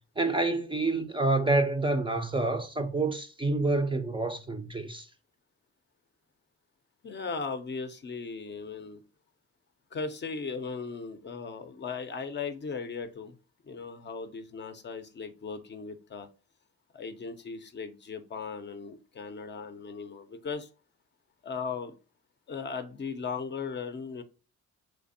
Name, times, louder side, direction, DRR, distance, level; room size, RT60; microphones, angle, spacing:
voice 1, 0.2-5.1, right 2 dB, 15° right, 0.4 m, -28 dB
voice 2, 7.0-9.0 9.9-13.4 13.6-16.3 16.9-20.7 21.4-21.9 22.5-24.2, left 5 dB, 35° left, 0.5 m, -37 dB
3.3 x 3.3 x 2.6 m
cardioid pair, 90°, 30 cm